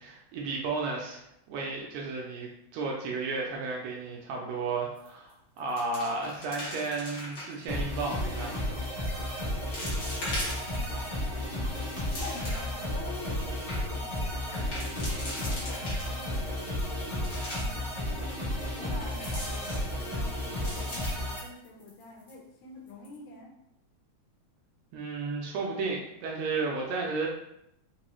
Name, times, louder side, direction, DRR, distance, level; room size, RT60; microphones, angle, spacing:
voice 1, 0.0-8.9 24.9-27.3, right 3 dB, 80° right, -1 dB, 1.6 m, -33 dB
sound 1, 5.0-5.3 5.6-7.6 8.3-8.7 9.2-9.3 9.7-11.0 11.5-12.8 13.2-13.3 13.5-13.8 14.5-16.4 16.9-17.9 19.0-20.1 20.5-22.0 22.3-22.4 22.9-23.1, left 1 dB, 55° left, 1.2 m, -40 dB
sound 2, 7.7-21.4, left 1 dB, 35° left, 0.7 m, -33 dB
voice 2, 10.7-11.7 12.0-18.4 18.8-23.5, left 3 dB, 80° left, 0 dB, 1.9 m, -47 dB
4.5 x 2.3 x 3.0 m, 0.80 s
omnidirectional pair, 3.3 m